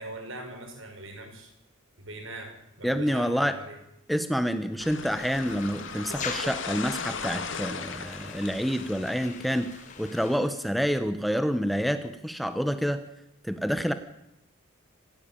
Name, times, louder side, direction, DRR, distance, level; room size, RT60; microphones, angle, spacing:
voice 1, 0.0-1.5 2.0-3.8, right 2 dB, 65° right, 4 dB, 6.1 m, -41 dB
voice 2, 2.8-3.6 4.1-9.7 10.0-13.0 13.4-13.9, equal, ahead, 10 dB, 1.0 m, -28 dB
sound 1, 4.8-10.5, left 5 dB, 60° left, 2.1 m, -38 dB
sound 2, 5.2-10.4, left 5 dB, 35° left, 3.5 m, -42 dB
26.5 x 16.0 x 8.9 m, 0.83 s
head